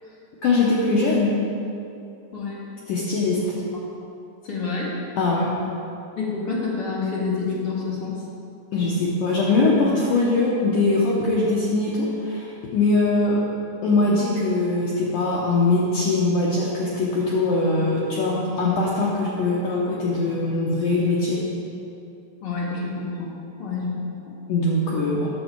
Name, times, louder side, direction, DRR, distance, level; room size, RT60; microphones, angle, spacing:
voice 1, 0.4-1.4 2.9-3.6 5.2-5.5 8.7-13.4 13.8-21.4 24.5-25.3, left 2 dB, 90° left, -5 dB, 1.8 m, -22 dB
voice 2, 4.4-4.9 6.2-8.2 22.4-23.3 23.6-24.1, left 4 dB, 50° left, -8 dB, 1.7 m, -28 dB
9.7 x 6.7 x 4.5 m, 2.6 s
omnidirectional pair, 5.0 m